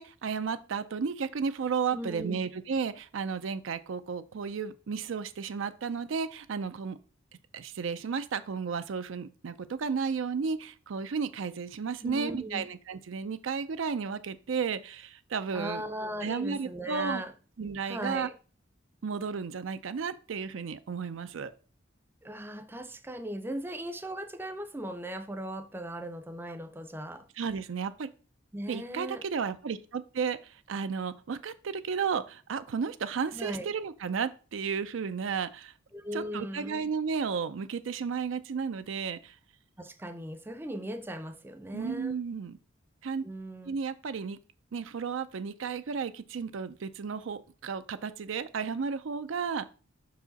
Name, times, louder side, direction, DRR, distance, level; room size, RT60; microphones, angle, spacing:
voice 1, 0.0-7.0 7.5-15.8 16.2-17.2 17.6-18.3 19.0-21.5 27.4-28.1 28.7-35.7 36.1-39.4 41.7-42.6 43.0-43.2 43.7-44.4 44.7-49.7, right 6 dB, 70° right, 0.5 m, -33 dB
voice 2, 1.9-2.5 12.0-12.6 15.5-17.3 17.8-18.3 22.2-27.2 28.5-29.2 33.3-33.7 35.9-36.9 39.8-42.2 43.2-43.7, right 1 dB, 10° right, 0.6 m, -38 dB
5.8 x 4.7 x 4.0 m
head